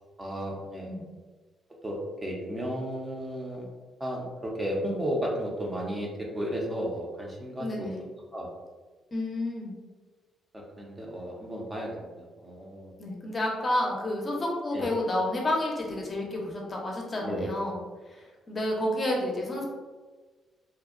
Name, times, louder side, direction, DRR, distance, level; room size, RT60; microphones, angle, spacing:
voice 1, 0.2-0.9 1.8-3.7 4.0-7.9 8.3-8.5 10.8-12.9 14.7-14.9 17.2-17.5, equal, 20° right, -2 dB, 0.5 m, -33 dB
voice 2, 7.6-8.0 9.1-9.7 13.0-17.8 18.1-19.6, left 1 dB, 35° left, -1 dB, 0.6 m, -30 dB
2.6 x 2.0 x 2.4 m, 1.3 s
cardioid pair, 90°, 0 cm